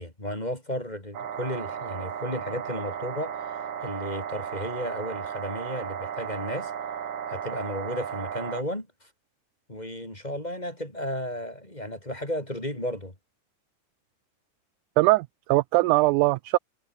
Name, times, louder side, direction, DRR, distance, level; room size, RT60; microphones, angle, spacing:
voice 1, 0.0-3.4 3.8-6.7 7.3-9.1 9.7-13.1, left 1 dB, 10° left, 4.1 m, -34 dB
sound 1, 1.1-8.6, right 8 dB, 60° right, 3.5 m, -35 dB
voice 2, 15.0-16.6, right 20 dB, 80° right, 1.8 m, -21 dB
omnidirectional pair, 3.9 m